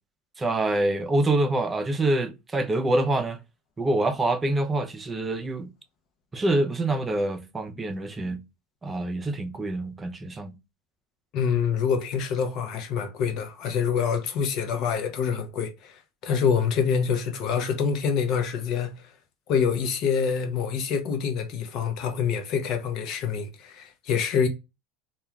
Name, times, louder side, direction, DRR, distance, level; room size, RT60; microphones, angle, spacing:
voice 1, 0.4-3.4 3.8-5.7 6.3-8.4 8.8-10.5, right 2 dB, 20° right, 0.5 m, -26 dB
voice 2, 11.3-19.1 19.5-24.5, left 6 dB, 50° left, 0.7 m, -26 dB
2.3 x 2.3 x 3.0 m
supercardioid pair, 105°, 0 cm